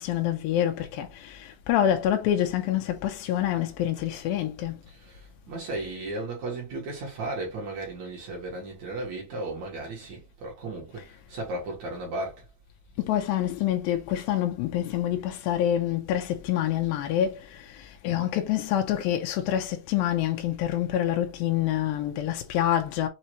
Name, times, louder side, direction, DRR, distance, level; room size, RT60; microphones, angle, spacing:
voice 1, 0.0-4.8 13.0-23.1, left 11 dB, 85° left, 2.4 m, -27 dB
voice 2, 4.9-12.4, right 2 dB, 60° right, 2.6 m, -35 dB
6.4 x 2.8 x 2.8 m
omnidirectional pair, 4.1 m